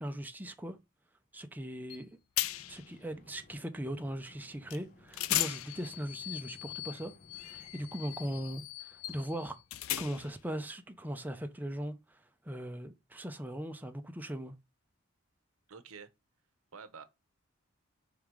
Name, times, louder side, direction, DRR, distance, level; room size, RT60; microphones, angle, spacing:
voice 1, 0.0-0.8 1.3-2.1 2.7-9.6 10.0-14.5, equal, 10° right, 0.6 m, -39 dB
sound 1, 1.9-2.0 2.4-2.9 4.7-4.8 5.1-10.4, left 14 dB, 80° left, 0.5 m, -37 dB
sound 2, 2.4-8.7, left 1 dB, 40° left, 1.1 m, -60 dB
voice 2, 15.7-16.1 16.7-17.0, right 5 dB, 90° right, 0.8 m, -48 dB
5.4 x 3.7 x 4.7 m
head